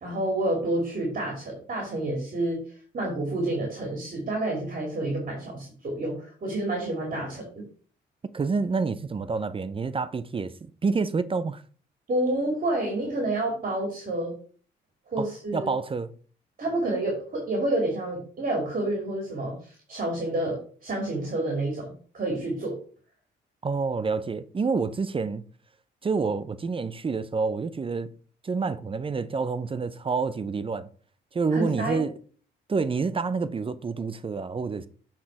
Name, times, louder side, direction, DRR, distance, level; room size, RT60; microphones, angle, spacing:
voice 1, 0.0-2.6 2.9-7.6 12.1-14.4 15.1-15.7 16.6-22.8 31.5-32.0, right 1 dB, 45° right, 2.8 m, -29 dB
voice 2, 8.3-11.6 15.2-16.1 23.6-25.4 26.0-28.1 28.4-30.9 31.3-32.1 32.7-34.9, right 4 dB, 25° right, 0.6 m, -28 dB
7.7 x 4.4 x 4.8 m
cardioid pair, 90°, 20 cm